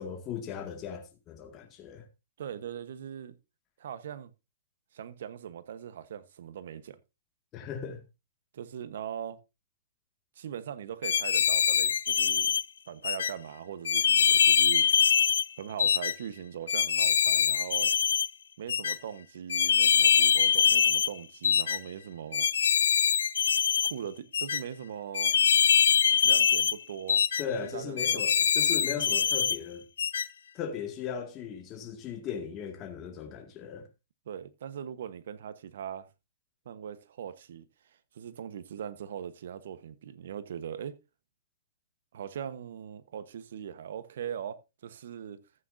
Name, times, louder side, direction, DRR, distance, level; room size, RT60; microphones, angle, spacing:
voice 1, 0.0-2.1 7.5-8.0 27.4-29.8 30.5-33.9, left 7 dB, 25° left, 2.0 m, -37 dB
voice 2, 2.4-3.4 3.8-4.3 4.9-7.0 8.5-9.4 10.4-12.5 12.9-14.9 15.6-17.9 18.6-22.5 23.8-25.4 26.2-27.2 27.6-28.2 34.3-36.1 36.6-37.6 38.1-41.0 42.1-45.4, right 9 dB, 65° right, 1.1 m, -40 dB
sound 1, 11.0-12.6 13.0-13.3 13.9-15.5 15.8-16.1 16.7-18.3 18.7-19.0 19.5-21.1 21.4-21.8 22.3-23.9 24.3-24.6 25.1-26.8 27.1-27.4 28.0-29.6 30.0-30.3, left 7 dB, 85° left, 0.5 m, -24 dB
14.0 x 8.8 x 2.7 m
hypercardioid pair, 150°, 0 cm